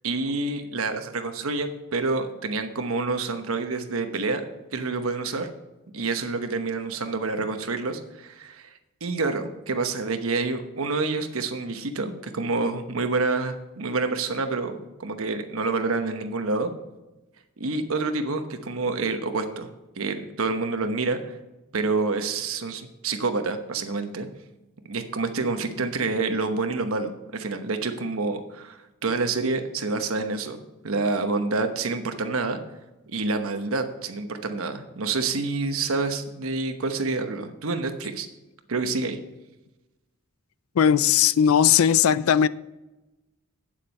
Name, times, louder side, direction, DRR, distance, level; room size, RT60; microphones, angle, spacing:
voice 1, 0.0-4.4 4.7-5.5 5.9-8.7 9.0-16.7 17.6-19.7 20.0-21.4 21.7-24.3 24.9-30.6 30.8-32.6 33.1-38.3 38.7-39.2, right 3 dB, 80° right, 1.0 m, -28 dB
voice 2, 40.8-42.5, left 8 dB, 80° left, 0.4 m, -18 dB
9.0 x 7.4 x 5.3 m
head